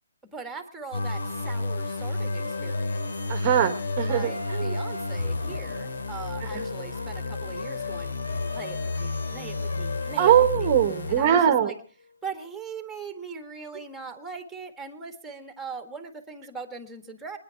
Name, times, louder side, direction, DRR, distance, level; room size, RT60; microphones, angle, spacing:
voice 1, 0.3-3.0 4.0-8.1 8.5-10.7 11.1-11.8 12.2-17.4, right 5 dB, 5° right, 7 dB, 1.6 m, -40 dB
sound 1, 0.9-11.7, left 3 dB, 80° left, 2.6 m, -31 dB
voice 2, 3.3-4.8 6.5-6.7 10.2-11.7, right 10 dB, 25° right, 10 dB, 1.1 m, -22 dB
21.5 x 10.0 x 5.7 m, 0.41 s
hypercardioid pair, 165°, 0 cm